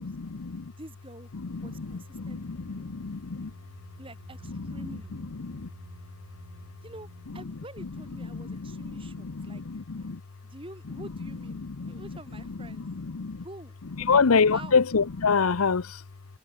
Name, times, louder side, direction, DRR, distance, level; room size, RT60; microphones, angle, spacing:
voice 1, 0.0-0.7 1.3-3.5 4.5-5.7 8.2-10.2 11.0-11.1 11.6-12.1 12.5-13.4 14.0-16.0, left 5 dB, 85° left, 0.8 m, -28 dB
voice 2, 0.8-1.3 1.6-2.9 4.0-5.1 6.8-9.6 10.0-10.1 10.5-12.9 13.4-14.2 14.5-14.8, right 1 dB, 25° right, 2.9 m, -47 dB
sound 1, 1.5-7.5, right 2 dB, 70° right, 1.4 m, -50 dB
head